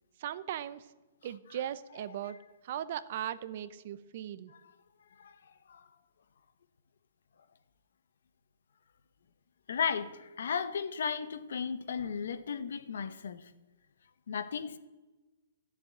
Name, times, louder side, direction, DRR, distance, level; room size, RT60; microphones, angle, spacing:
voice 1, 0.2-0.9 1.2-2.4 2.6-4.5, right 11 dB, 40° right, 0.7 m, -38 dB
voice 2, 9.7-13.5 14.3-14.8, left 6 dB, 70° left, 1.3 m, -35 dB
13.5 x 7.6 x 9.9 m
hypercardioid pair, 175°, 0 cm